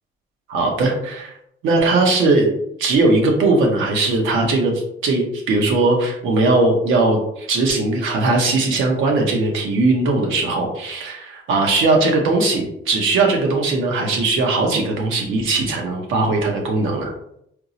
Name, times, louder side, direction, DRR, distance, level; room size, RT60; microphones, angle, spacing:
voice 1, 0.5-1.3 1.6-2.5 2.8-4.7 5.0-17.1, right 3 dB, 90° right, 1 dB, 0.8 m, -19 dB
4.3 x 2.0 x 2.7 m, 0.76 s
cardioid pair, 90°, 20 cm